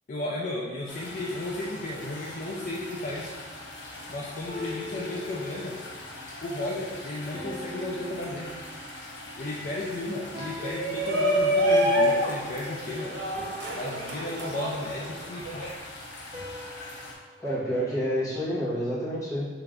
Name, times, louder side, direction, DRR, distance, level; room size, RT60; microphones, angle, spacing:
voice 1, 0.1-3.3 4.1-5.8 6.4-8.6 9.3-13.2 13.7-15.8, left 1 dB, 50° left, -4 dB, 0.4 m, -34 dB
sound 1, 0.9-17.2, left 2 dB, 85° left, 0.8 m, -42 dB
sound 2, 4.5-6.0 7.3-9.2 10.3-11.8 13.3-14.8 16.3-18.6, left 1 dB, 35° right, 0.7 m, -44 dB
Shout, 10.5-15.7, equal, 85° right, 0.7 m, -26 dB
voice 2, 17.4-19.5, equal, 20° left, -10 dB, 1.4 m, -28 dB
3.3 x 3.0 x 3.7 m, 1.4 s
head